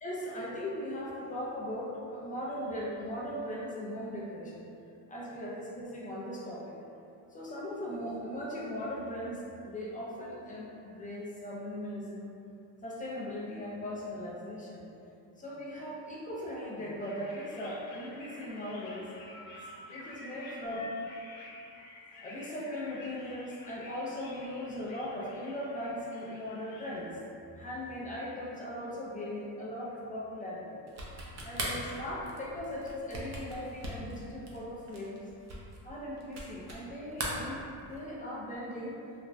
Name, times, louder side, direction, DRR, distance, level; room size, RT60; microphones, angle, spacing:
voice 1, 0.0-4.7 5.1-6.8 7.3-12.3 12.8-14.8 15.4-19.1 19.9-20.9 22.2-27.2 27.5-30.8 31.4-35.2 35.8-39.0, left 1 dB, 20° left, -5 dB, 0.3 m, -39 dB
sound 1, 17.0-27.1, left 1 dB, 85° left, 0.6 m, -50 dB
sound 2, 30.9-36.9 37.1-38.1, right 2 dB, 35° right, 0.5 m, -40 dB
3.2 x 2.1 x 2.4 m, 2.6 s
cardioid pair, 115°, 45 cm